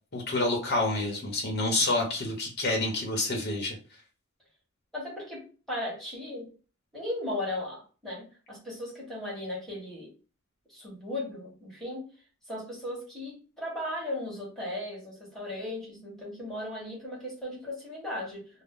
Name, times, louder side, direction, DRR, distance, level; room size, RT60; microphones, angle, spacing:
voice 1, 0.1-3.8, left 2 dB, 50° left, 0 dB, 0.8 m, -28 dB
voice 2, 4.9-6.5 6.9-10.1 10.7-12.1 12.5-18.5, left 1 dB, ahead, -6 dB, 1.2 m, -36 dB
2.6 x 2.0 x 3.5 m, 0.36 s
head